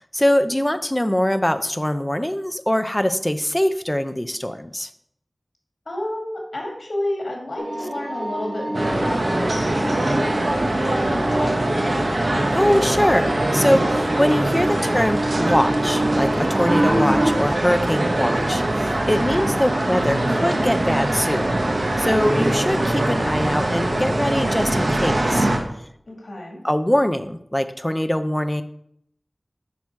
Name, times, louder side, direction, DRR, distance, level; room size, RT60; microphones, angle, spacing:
voice 1, 0.1-4.9 12.5-21.6 22.0-25.5 26.6-28.6, left 1 dB, 15° left, 10 dB, 0.6 m, -22 dB
voice 2, 5.9-12.4 19.1-19.5 26.1-26.6, left 1 dB, 85° left, -1 dB, 2.4 m, -31 dB
sound 1, 7.6-17.3, right 1 dB, 40° right, 2.5 m, -27 dB
sound 2, 8.7-25.6, right 1 dB, 60° right, 1.3 m, -22 dB
7.2 x 6.1 x 4.7 m, 0.71 s
wide cardioid pair, 65°, 0 cm